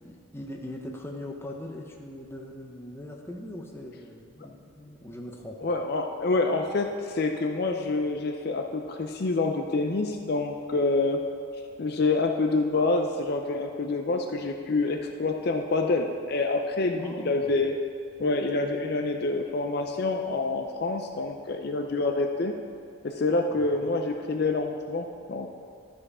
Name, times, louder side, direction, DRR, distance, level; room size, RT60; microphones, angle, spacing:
voice 1, 0.0-5.6 17.0-17.6 23.8-24.0, left 1 dB, 10° left, 0 dB, 0.8 m, -40 dB
voice 2, 5.6-11.2 11.8-17.7 18.2-22.5 23.0-25.5, left 3 dB, 50° left, 4 dB, 0.5 m, -27 dB
12.5 x 5.2 x 4.8 m, 2.4 s
head